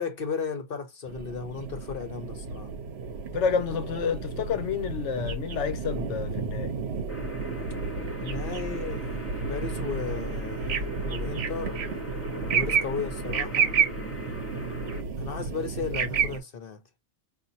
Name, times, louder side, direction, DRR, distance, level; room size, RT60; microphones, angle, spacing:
voice 1, 0.0-2.7 8.2-11.8 12.5-13.8 15.2-16.8, left 5 dB, 55° left, 1.1 m, -35 dB
sound 1, 1.1-16.4, right 6 dB, 65° right, 1.0 m, -31 dB
voice 2, 3.3-6.7, left 6 dB, 80° left, 1.0 m, -29 dB
sound 2, 7.1-15.0, equal, 15° left, 0.7 m, -39 dB
5.1 x 2.6 x 2.7 m
omnidirectional pair, 1.2 m